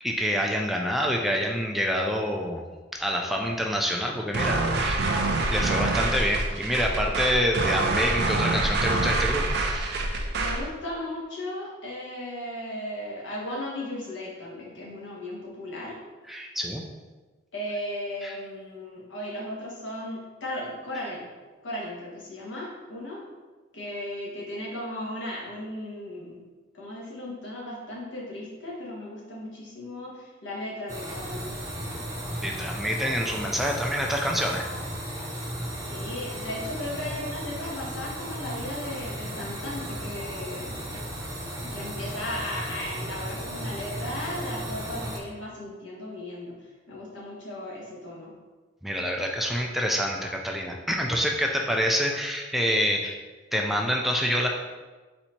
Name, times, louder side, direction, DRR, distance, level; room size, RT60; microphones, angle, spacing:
voice 1, 0.0-2.6 2.9-5.2 5.5-9.9 16.3-16.8 18.2-18.3 32.4-34.7 48.8-53.2 53.5-54.5, equal, ahead, 1 dB, 0.3 m, -27 dB
sound 1, 4.3-10.7, right 2 dB, 60° right, 0.5 m, -26 dB
voice 2, 10.3-16.0 17.5-21.3 21.6-23.2 23.7-26.5 26.7-31.5 35.8-41.0 41.6-46.5 46.9-48.3, left 1 dB, 80° left, -5 dB, 1.4 m, -36 dB
sound 2, 30.9-45.2, right 1 dB, 15° right, 0.8 m, -35 dB
4.2 x 2.7 x 4.3 m, 1.3 s
head